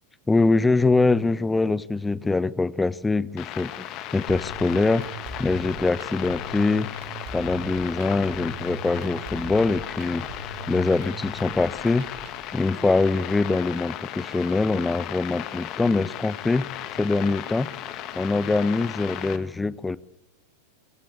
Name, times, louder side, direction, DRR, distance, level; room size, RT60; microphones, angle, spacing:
voice 1, 0.3-3.9 4.1-5.0 5.4-6.9 7.3-10.3 10.7-12.1 12.5-16.7 17.0-17.7 18.1-20.0, left 3 dB, 10° left, 22 dB, 0.7 m, -23 dB
sound 1, 3.4-19.4, left 12 dB, 35° left, 1.7 m, -36 dB
sound 2, 4.3-12.3, right 2 dB, 50° right, 7.2 m, -40 dB
22.5 x 16.0 x 8.6 m, 0.91 s
figure-of-eight pair, 90°, 0 cm